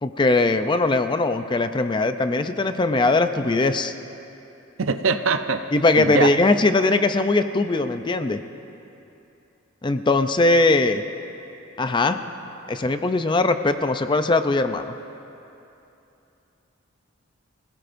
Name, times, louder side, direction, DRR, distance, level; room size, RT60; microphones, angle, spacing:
voice 1, 0.0-3.9 5.7-8.4 9.8-11.0 11.8-12.2 12.7-14.9, left 2 dB, 25° left, 9 dB, 0.5 m, -20 dB
voice 2, 4.8-5.6 6.0-6.3, right 4 dB, 75° right, 8 dB, 0.7 m, -22 dB
26.0 x 17.0 x 2.6 m, 2.9 s
head